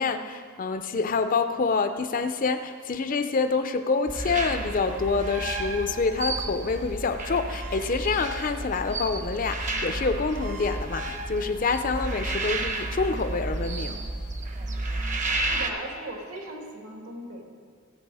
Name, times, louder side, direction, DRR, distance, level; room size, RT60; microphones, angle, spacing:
voice 1, 0.0-14.0, left 4 dB, 40° left, 9 dB, 0.5 m, -27 dB
sound 1, 4.1-15.7, right 2 dB, 35° right, 0.8 m, -31 dB
voice 2, 15.4-17.4, right 1 dB, 80° right, 0 dB, 2.3 m, -38 dB
17.0 x 7.7 x 4.8 m, 2.1 s
head